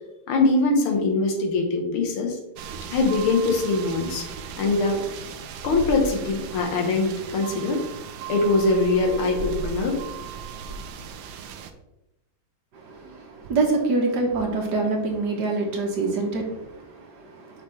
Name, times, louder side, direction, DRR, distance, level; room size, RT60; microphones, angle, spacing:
voice 1, 0.3-2.4 2.9-4.3 4.6-5.1 5.6-7.8 8.3-10.0, left 3 dB, 90° left, 2 dB, 2.0 m, -22 dB
sound 1, 2.6-11.7, right 5 dB, 75° right, 1.3 m, -36 dB
voice 2, 12.7-17.6, right 3 dB, 60° right, 1 dB, 1.6 m, -26 dB
5.9 x 5.7 x 3.2 m, 0.91 s
omnidirectional pair, 2.3 m